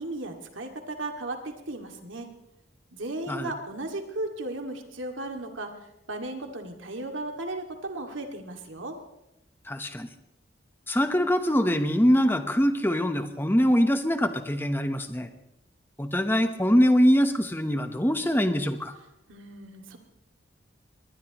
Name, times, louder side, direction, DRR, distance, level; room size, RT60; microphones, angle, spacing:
voice 1, 0.0-2.3 2.9-5.7 6.1-8.9 19.3-20.0, right 2 dB, 90° right, 3 dB, 2.3 m, -35 dB
voice 2, 9.7-10.1 10.9-15.3 16.0-18.9, equal, 10° left, 8 dB, 1.0 m, -23 dB
23.0 x 20.0 x 3.0 m, 0.87 s
head